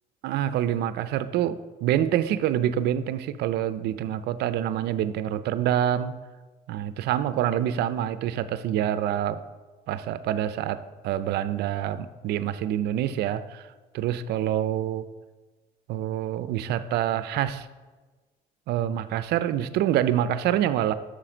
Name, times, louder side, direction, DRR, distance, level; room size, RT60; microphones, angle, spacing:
voice 1, 0.2-6.2 6.7-9.4 9.9-13.6 13.9-15.1 15.9-17.7 18.7-20.9, right 11 dB, 75° right, 14 dB, 0.5 m, -26 dB
7.7 x 6.5 x 5.0 m, 1.3 s
cardioid pair, 110°, 17 cm